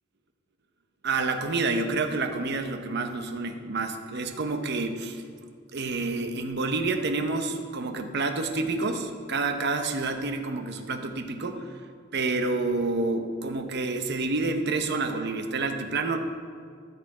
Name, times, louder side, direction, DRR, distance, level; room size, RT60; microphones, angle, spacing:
voice 1, 1.0-5.2 5.7-11.7 12.1-16.2, right 3 dB, 55° right, 6 dB, 0.8 m, -28 dB
12.5 x 6.7 x 4.9 m, 2.2 s
head